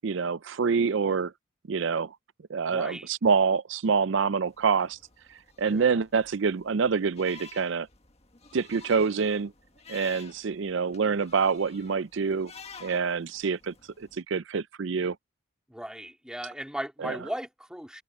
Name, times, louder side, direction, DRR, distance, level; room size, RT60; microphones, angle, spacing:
voice 1, 0.0-1.3 1.7-2.1 2.5-5.0 5.6-7.9 8.5-9.5 9.9-12.5 12.8-15.2 17.0-17.2, right 5 dB, 65° right, 0.5 m, -26 dB
voice 2, 2.7-3.1 5.6-5.9 15.7-18.0, equal, 5° right, 2.7 m, -37 dB
sound 1, 4.5-14.2, left 6 dB, 30° left, 1.6 m, -51 dB
head